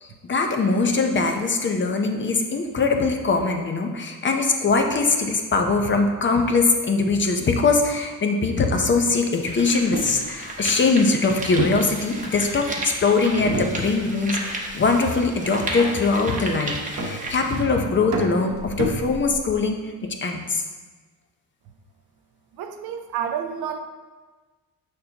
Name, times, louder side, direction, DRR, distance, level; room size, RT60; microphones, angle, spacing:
voice 1, 0.0-20.6, left 3 dB, 30° left, 3 dB, 0.7 m, -22 dB
sound 1, 8.4-8.5 9.1-17.6, right 2 dB, 20° right, 1.0 m, -34 dB
sound 2, 9.9-10.2 11.6-12.6 13.4-14.2 14.5-14.9 15.8-16.3 17.0-17.6 18.1-19.6, right 1 dB, 50° right, 1.1 m, -30 dB
voice 2, 22.6-23.8, right 8 dB, 75° right, 6 dB, 0.7 m, -29 dB
6.6 x 5.2 x 2.9 m, 1.3 s
cardioid pair, 100°, 37 cm